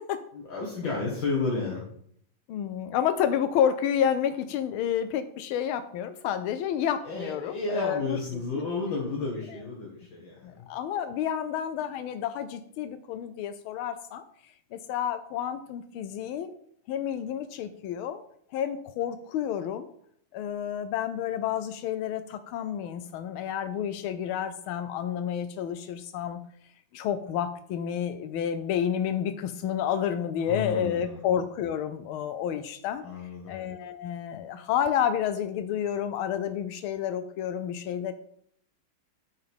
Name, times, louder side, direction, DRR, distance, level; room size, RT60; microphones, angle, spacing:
voice 1, 0.3-1.8 7.0-10.7 30.4-31.3 33.0-33.5, left 3 dB, 65° left, -3 dB, 2.4 m, -32 dB
voice 2, 2.5-8.2 8.5-8.6 10.4-14.2 14.7-16.5 16.9-18.2 18.5-19.9 20.3-26.4 26.9-33.0 33.5-38.1, left 9 dB, 85° left, 11 dB, 1.4 m, -30 dB
12.5 x 5.7 x 3.6 m, 0.67 s
omnidirectional pair, 2.3 m